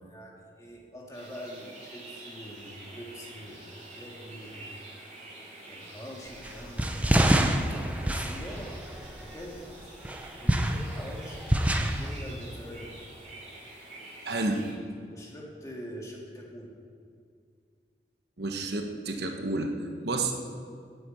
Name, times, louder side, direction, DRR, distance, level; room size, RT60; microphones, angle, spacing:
voice 1, 0.0-4.8 5.7-7.1 7.7-8.9 9.2-9.9 10.4-13.0 14.2-14.4 15.1-16.7, equal, 20° left, -2 dB, 2.0 m, -44 dB
sound 1, 1.1-14.7, right 2 dB, 40° right, 3.7 m, -47 dB
sound 2, 6.4-9.5 10.0-12.1, right 1 dB, 10° right, 0.6 m, -26 dB
voice 2, 14.2-14.6 18.4-19.7 20.0-20.3, right 2 dB, 70° right, 4 dB, 1.2 m, -30 dB
9.4 x 8.3 x 8.6 m, 2.2 s
head